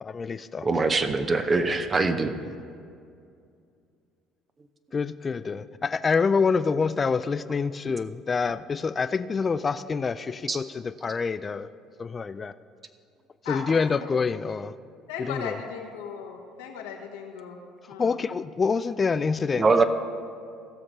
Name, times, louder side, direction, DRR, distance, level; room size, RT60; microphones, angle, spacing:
voice 1, 0.0-0.7 2.4-2.5 4.9-11.7 12.0-12.5 13.5-14.7 15.2-15.6 18.0-19.7, left 5 dB, 30° left, 13 dB, 0.3 m, -26 dB
voice 2, 0.6-2.3 10.5-10.6 19.6-19.8, right 3 dB, 35° right, 8 dB, 0.7 m, -22 dB
voice 3, 13.4-13.8 15.1-17.6 17.9-18.2, left 6 dB, 90° left, 2 dB, 1.3 m, -37 dB
15.5 x 6.0 x 5.3 m, 2.4 s
supercardioid pair, 75°, 0 cm